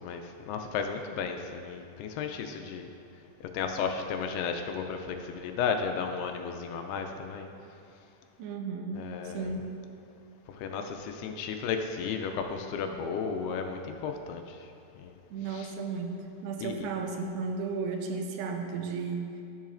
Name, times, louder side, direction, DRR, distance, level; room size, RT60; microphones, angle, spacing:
voice 1, 0.0-2.9 3.5-7.5 9.0-9.5 10.5-14.6 15.0-15.2 15.5-15.7 16.6-16.7, left 6 dB, 80° left, 5 dB, 2.5 m, -34 dB
voice 2, 8.4-9.7 15.3-19.3, right 4 dB, 85° right, 3 dB, 2.8 m, -34 dB
13.0 x 7.2 x 2.5 m, 2.6 s
omnidirectional pair, 4.7 m